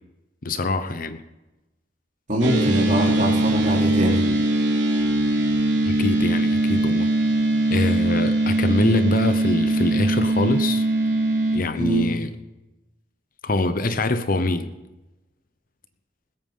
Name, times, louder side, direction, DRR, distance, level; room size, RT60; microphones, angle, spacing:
voice 1, 0.4-1.2 5.8-7.1 7.7-10.9 11.5-12.3 13.4-14.7, left 2 dB, 50° left, 0.9 m, -24 dB
voice 2, 2.3-4.2 11.8-12.1, right 1 dB, 40° right, 3.2 m, -22 dB
sound 1, 2.4-11.6, right 2 dB, 70° right, 3.0 m, -21 dB
20.5 x 8.8 x 5.6 m
head